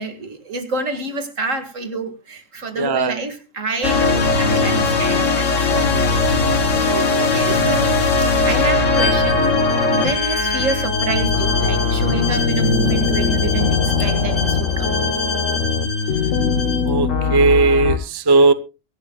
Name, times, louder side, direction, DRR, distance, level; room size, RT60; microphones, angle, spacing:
voice 1, 0.0-6.2 7.2-8.0 8.4-9.5 9.9-15.1, right 3 dB, 85° right, 2.4 m, -27 dB
voice 2, 2.8-3.1 6.8-7.0 16.9-18.5, right 3 dB, 25° right, 0.7 m, -17 dB
sound 1, 3.8-18.0, left 4 dB, 80° left, 1.6 m, -19 dB
Bowed string instrument, 8.9-16.8, left 3 dB, 60° left, 4.1 m, -27 dB
23.5 x 11.5 x 2.4 m
omnidirectional pair, 1.3 m